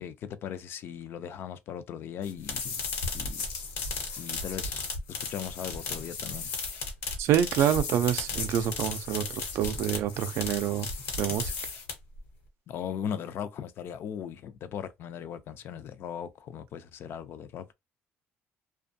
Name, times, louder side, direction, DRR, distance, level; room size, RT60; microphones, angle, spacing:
voice 1, 0.0-2.9 3.1-3.5 4.2-4.9 5.3-6.5 12.7-17.7, left 8 dB, 55° left, 0.4 m, -38 dB
sound 1, 2.2-12.2, left 4 dB, 85° left, 1.1 m, -35 dB
voice 2, 7.2-10.9 11.2-11.5, right 10 dB, 70° right, 0.4 m, -27 dB
2.5 x 2.3 x 2.6 m
cardioid pair, 140°, 5 cm